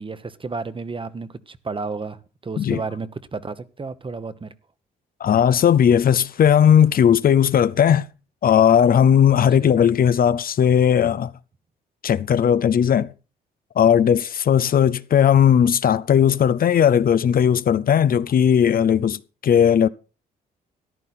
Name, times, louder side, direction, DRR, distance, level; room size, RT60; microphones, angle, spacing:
voice 1, 0.0-4.5 9.6-9.7, right 4 dB, 30° right, 1.1 m, -32 dB
voice 2, 5.2-8.1 8.4-11.3 12.0-13.1 13.8-19.9, left 8 dB, 50° left, 0.6 m, -17 dB
14.0 x 10.5 x 4.3 m
supercardioid pair, 65°, 19 cm